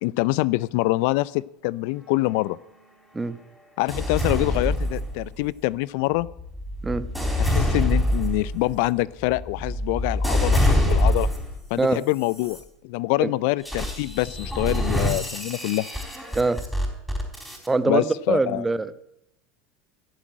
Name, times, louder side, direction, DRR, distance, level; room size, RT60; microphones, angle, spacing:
voice 1, 0.0-2.6 3.8-6.3 7.4-11.3 11.7-15.9 17.9-18.7, left 20 dB, 65° left, 21 dB, 0.4 m, -25 dB
sound 1, 3.9-5.5 6.1-11.6 12.2-12.6 13.6-17.7, left 1 dB, ahead, 4.0 m, -25 dB
voice 2, 17.7-18.9, right 3 dB, 15° right, 13 dB, 1.0 m, -23 dB
14.5 x 7.4 x 8.8 m, 0.82 s
hypercardioid pair, 90°, 0 cm